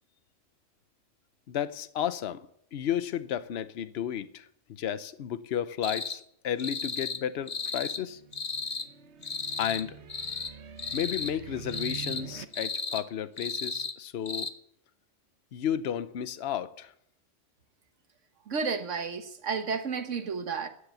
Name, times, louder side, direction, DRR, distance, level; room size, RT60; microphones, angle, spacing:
voice 1, 1.5-8.2 9.6-9.9 10.9-14.5 15.5-16.9, left 9 dB, 60° left, 1.0 m, -33 dB
sound 1, 5.8-6.2 6.6-7.2 7.5-8.0 8.3-8.9 9.2-9.8 10.1-10.5 10.8-11.3 11.7-12.2 12.5-13.0 13.4-13.9 14.3-14.5, left 4 dB, 35° left, 1.0 m, -34 dB
sound 2, 7.5-12.5, right 10 dB, 65° right, 1.2 m, -46 dB
voice 2, 18.5-20.7, right 5 dB, 80° right, 1.6 m, -32 dB
13.5 x 9.9 x 8.1 m
omnidirectional pair, 1.2 m